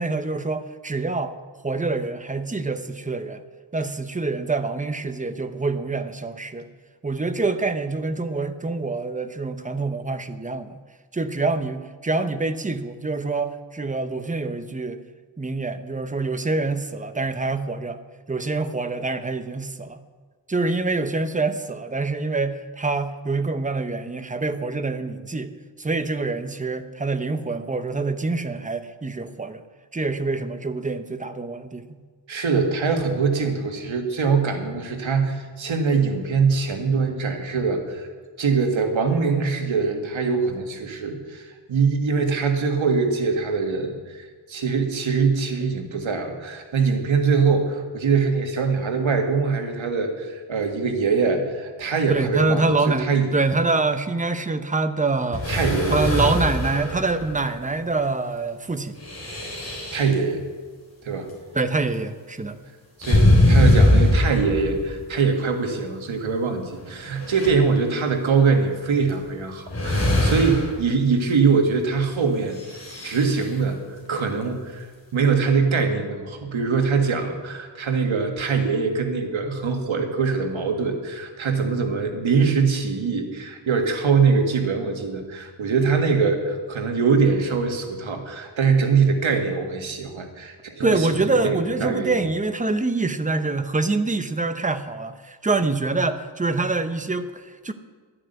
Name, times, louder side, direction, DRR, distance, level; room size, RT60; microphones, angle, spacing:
voice 1, 0.0-1.3 1.6-3.4 3.7-6.7 7.0-10.8 11.1-15.0 15.4-18.0 18.3-20.0 20.5-25.5 25.8-29.6 29.9-32.0 52.1-55.5 55.9-59.0 61.5-62.6 90.8-97.7, right 3 dB, 15° right, 9 dB, 0.7 m, -25 dB
voice 2, 32.3-38.1 38.4-53.3 55.4-56.0 59.9-60.4 61.0-61.3 63.0-72.6 73.0-74.9 75.1-92.1, right 5 dB, 85° right, 4 dB, 1.9 m, -23 dB
sound 1, 55.3-57.5 59.0-60.1 63.0-65.0 66.2-66.3 66.9-67.5 69.1-69.2 69.7-70.8 72.5-73.5, left 1 dB, 35° left, 3.8 m, -21 dB
11.5 x 9.9 x 8.0 m, 1.6 s
wide cardioid pair, 165°, 46 cm